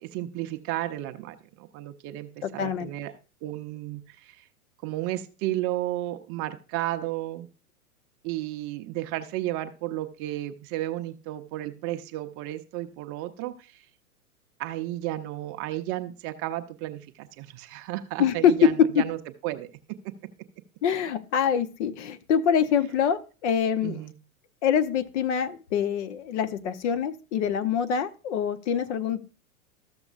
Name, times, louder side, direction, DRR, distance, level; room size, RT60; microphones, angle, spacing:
voice 1, 0.0-3.1 3.4-4.4 4.8-7.5 8.2-13.7 14.6-19.2 19.4-19.7 23.8-24.1, right 15 dB, 30° right, 9 dB, 0.7 m, -33 dB
voice 2, 2.4-2.9 18.2-19.0 20.8-24.0 24.6-29.2, left 7 dB, 50° left, 10 dB, 0.9 m, -24 dB
13.5 x 6.9 x 2.4 m, 0.33 s
figure-of-eight pair, 100°, 44 cm